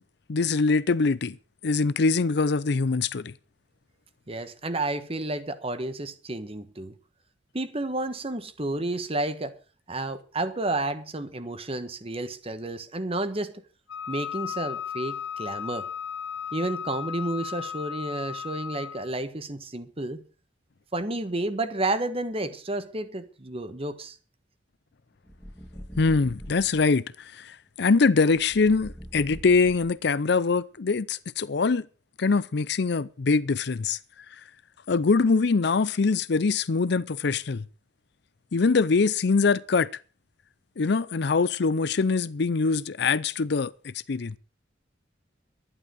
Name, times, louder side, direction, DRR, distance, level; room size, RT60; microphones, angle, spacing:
voice 1, 0.3-1.4 1.6-3.3 26.0-31.9 32.2-34.0 34.9-37.6 38.5-39.9 40.8-44.4, left 4 dB, 60° left, 0.6 m, -23 dB
voice 2, 4.3-6.9 7.5-9.6 9.9-13.5 14.1-15.9 16.5-20.2 20.9-24.2, right 2 dB, 30° right, 1.3 m, -31 dB
Wind instrument woodwind instrument, 13.9-19.1, left 8 dB, 80° left, 1.3 m, -35 dB
sound 1, 25.2-26.8 28.3-30.2, equal, 5° left, 2.1 m, -43 dB
12.0 x 11.0 x 6.2 m
head